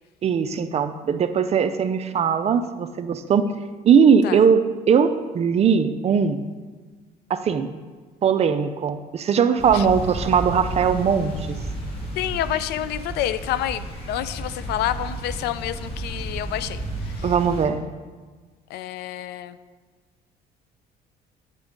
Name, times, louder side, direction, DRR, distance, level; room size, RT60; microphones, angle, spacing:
voice 1, 0.2-3.5 3.8-6.4 7.3-7.7 8.2-11.6 17.2-17.8, right 7 dB, 40° right, 11 dB, 0.4 m, -20 dB
sound 1, 9.6-17.7, right 1 dB, 35° left, 2.0 m, -32 dB
voice 2, 12.2-17.3 18.7-19.6, left 12 dB, 75° left, 14 dB, 0.4 m, -28 dB
8.9 x 3.6 x 5.1 m, 1.4 s
cardioid pair, 110°, 17 cm